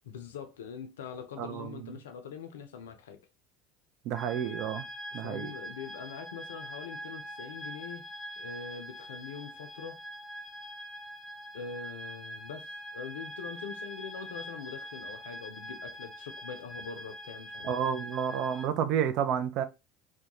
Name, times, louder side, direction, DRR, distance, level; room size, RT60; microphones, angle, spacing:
voice 1, 0.1-3.2 5.1-8.1 8.4-10.0 11.5-17.9, left 6 dB, 85° left, 0.5 m, -43 dB
voice 2, 1.4-1.9 4.0-4.8 5.1-5.5 17.6-19.6, right 8 dB, 60° right, 0.4 m, -30 dB
sound 1, 4.1-18.7, equal, ahead, 0.6 m, -43 dB
2.3 x 2.2 x 2.9 m
hypercardioid pair, 75°, 0 cm